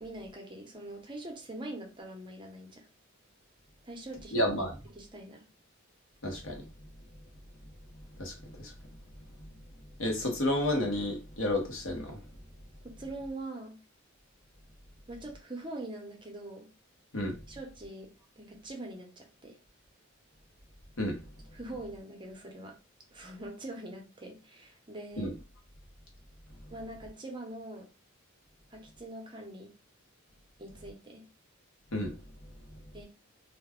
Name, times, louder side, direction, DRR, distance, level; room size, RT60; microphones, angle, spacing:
voice 1, 0.0-2.9 3.8-4.6 4.9-5.4 12.8-13.8 15.1-16.7 17.5-18.1 18.4-19.6 21.5-22.8 23.1-25.3 26.7-27.9 28.7-29.7 30.6-31.2 32.9-33.0, right 1 dB, 25° right, 0.6 m, -43 dB
voice 2, 4.3-4.7 6.2-6.7 8.2-8.7 9.4-9.5 10.0-12.2 17.1-17.4 21.0-21.2 25.2-25.3 31.9-32.2, left 1 dB, 80° left, 1.0 m, -31 dB
2.4 x 2.2 x 3.5 m
head